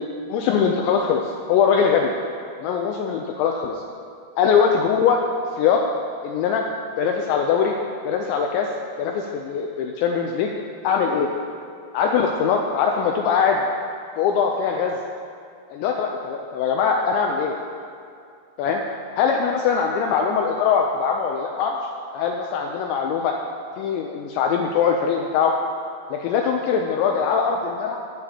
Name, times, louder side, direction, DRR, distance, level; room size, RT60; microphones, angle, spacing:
voice 1, 0.0-2.1 2.6-3.8 4.4-5.2 5.6-5.8 6.2-6.6 7.0-7.7 8.1-8.7 9.0-10.5 10.8-11.3 11.9-13.6 14.2-15.0 15.7-17.6 18.6-18.8 19.2-21.8 22.1-23.4 23.8-25.5 26.1-28.0, left 6 dB, 85° left, 2 dB, 2.6 m, -22 dB
20.0 x 7.0 x 2.8 m, 2.3 s
omnidirectional pair, 5.6 m